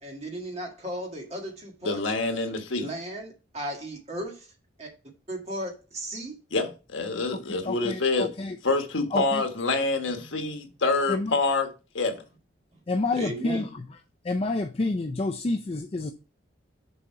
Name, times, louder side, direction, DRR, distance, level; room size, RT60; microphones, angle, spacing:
voice 1, 0.0-2.1 2.7-4.5 4.8-4.9 5.3-6.4 13.1-13.7, right 1 dB, 35° right, 1.7 m, -36 dB
voice 2, 1.8-2.9 6.5-8.3 8.6-11.7 11.9-12.1, left 3 dB, 80° left, 1.3 m, -26 dB
voice 3, 7.3-8.6 9.1-9.4 11.1-11.4 12.9-13.7 14.2-16.1, left 2 dB, 30° left, 0.4 m, -29 dB
6.9 x 3.9 x 4.6 m
head